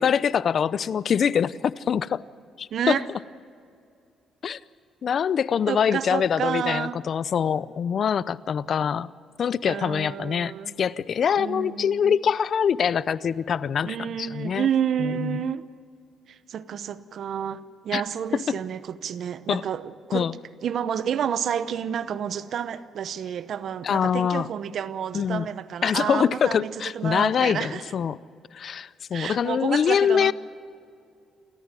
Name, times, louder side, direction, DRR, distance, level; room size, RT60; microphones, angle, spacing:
voice 1, 0.0-2.2 2.6-3.0 4.4-4.6 5.0-9.1 9.4-10.5 10.8-14.7 15.0-15.4 17.9-18.0 18.5-18.6 19.5-19.6 20.1-20.3 23.8-24.5 25.1-25.5 25.8-28.2 28.5-30.3, left 7 dB, 55° left, 0.6 m, -24 dB
voice 2, 2.7-3.0 5.7-7.0 9.7-10.7 11.4-12.1 13.8-15.7 16.3-20.3 20.6-27.9 29.1-30.3, right 8 dB, 65° right, 0.9 m, -30 dB
28.5 x 14.0 x 7.6 m
cardioid pair, 90°, 0 cm